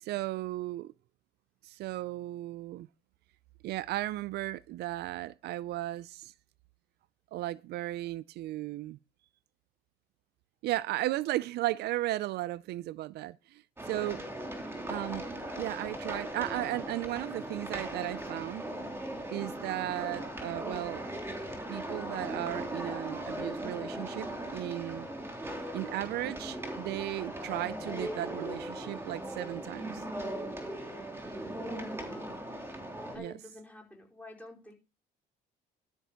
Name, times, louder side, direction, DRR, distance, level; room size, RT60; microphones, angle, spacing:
voice 1, 0.0-0.9 1.6-2.9 3.6-6.3 7.3-9.0 10.6-14.2 14.9-15.3 15.6-18.6 19.3-21.0 21.7-24.3 24.5-25.1 25.7-30.0 33.2-33.3, right 16 dB, 75° right, 0.5 m, -35 dB
sound 1, 13.8-33.2, right 1 dB, 15° right, 3.3 m, -39 dB
voice 2, 31.9-32.6 33.1-34.7, left 2 dB, 10° left, 4.8 m, -50 dB
12.5 x 5.4 x 6.9 m
cardioid pair, 110°, 17 cm